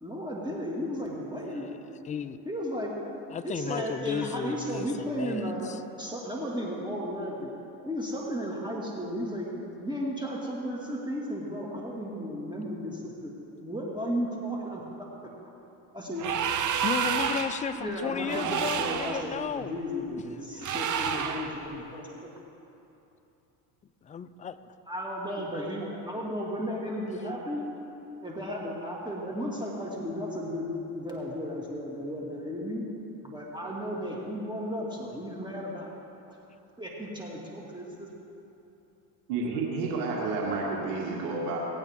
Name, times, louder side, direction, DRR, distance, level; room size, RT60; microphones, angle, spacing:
voice 1, 0.0-1.7 2.5-2.9 3.4-5.7 6.0-7.5 7.9-9.5 9.8-13.3 13.6-15.1 15.9-16.4 17.7-22.3 24.9-27.6 28.2-32.8 33.2-35.9 36.8-38.1, equal, 10° right, -3 dB, 2.2 m, -34 dB
voice 2, 2.0-2.4 3.3-5.8 16.8-19.7 20.7-20.8 24.1-24.5, left 7 dB, 20° left, 12 dB, 0.3 m, -34 dB
sound 1, 16.2-17.6 18.2-19.3 20.6-21.5, right 8 dB, 40° right, 1.0 m, -29 dB
voice 3, 39.3-41.6, right 3 dB, 80° right, -2 dB, 2.3 m, -30 dB
19.0 x 8.9 x 3.6 m, 2.9 s
hypercardioid pair, 80°, 46 cm